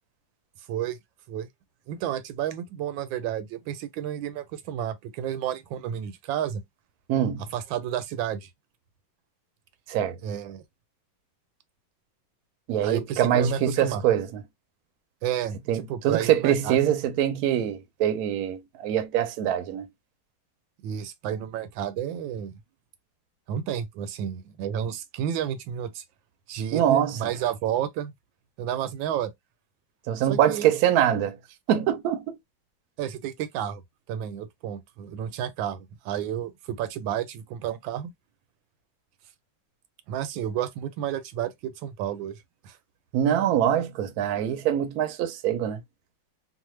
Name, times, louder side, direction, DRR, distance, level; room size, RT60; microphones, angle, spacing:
voice 1, 1.9-6.6 7.5-8.5 10.2-10.6 12.8-14.0 15.2-17.0 20.8-22.6 23.5-26.0 26.5-28.1 28.6-29.3 30.3-30.7 33.0-33.8 34.1-38.1 40.1-42.4 42.6-42.8, right 10 dB, 85° right, 1.3 m, -31 dB
voice 2, 7.1-7.4 9.9-10.2 12.7-14.4 15.7-19.8 26.7-27.2 30.1-31.4 31.7-32.4 43.1-45.8, right 10 dB, 70° right, 0.9 m, -24 dB
3.2 x 2.0 x 3.1 m
omnidirectional pair, 2.0 m